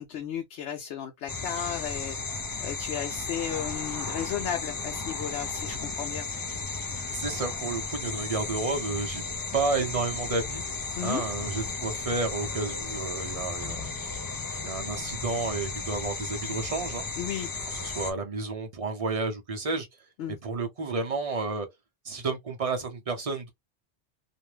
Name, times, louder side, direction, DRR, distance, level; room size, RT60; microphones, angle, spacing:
voice 1, 0.0-2.2 2.6-6.3 11.0-11.2 17.2-17.5 20.2-20.4, left 9 dB, 85° left, 0.9 m, -34 dB
sound 1, 1.3-18.1, left 4 dB, 35° left, 0.3 m, -34 dB
voice 2, 7.1-9.2 9.5-10.6 11.0-13.8 14.6-17.0 17.7-19.9 20.4-21.7 22.0-23.5, right 3 dB, 35° right, 0.7 m, -31 dB
2.6 x 2.1 x 3.2 m
omnidirectional pair, 1.1 m